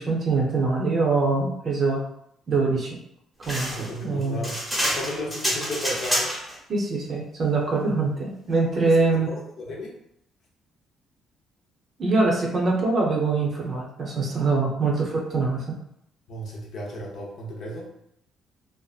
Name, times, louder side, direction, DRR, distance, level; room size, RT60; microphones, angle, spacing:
voice 1, 0.0-2.0 2.5-2.9 3.5-3.7 4.0-4.4 6.7-9.3 12.0-15.8, right 3 dB, 40° right, -1 dB, 0.6 m, -23 dB
sound 1, 3.4-6.6, equal, 5° right, 0.8 m, -27 dB
voice 2, 3.7-6.3 8.8-9.9 16.3-17.9, equal, 55° left, -2 dB, 0.7 m, -34 dB
2.7 x 2.4 x 2.4 m, 0.74 s
cardioid pair, 130°, 0 cm